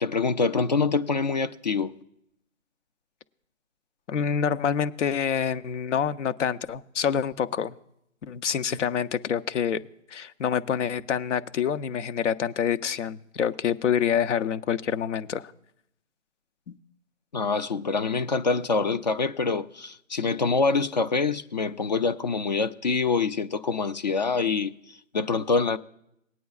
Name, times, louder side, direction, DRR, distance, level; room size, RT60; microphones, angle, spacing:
voice 1, 0.0-1.9 17.3-24.7 25.1-25.8, left 4 dB, 35° left, 0.4 m, -25 dB
voice 2, 4.1-7.7 8.2-9.8 10.1-15.5 16.7-16.8, left 8 dB, 65° left, 0.8 m, -27 dB
20.0 x 9.2 x 2.4 m
hypercardioid pair, 150°, 39 cm